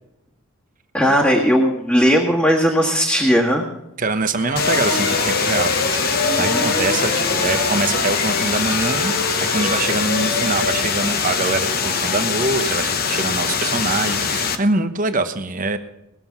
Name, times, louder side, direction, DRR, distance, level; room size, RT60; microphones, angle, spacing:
voice 1, 0.9-3.7 6.4-6.6, equal, 5° left, -5 dB, 1.7 m, -17 dB
voice 2, 4.0-15.8, right 3 dB, 35° right, 9 dB, 1.0 m, -24 dB
sound 1, 4.3-13.0, left 2 dB, 65° left, 4.5 m, -26 dB
sound 2, 4.6-14.6, left 6 dB, 45° left, 1.0 m, -23 dB
19.5 x 7.7 x 5.9 m, 0.92 s
head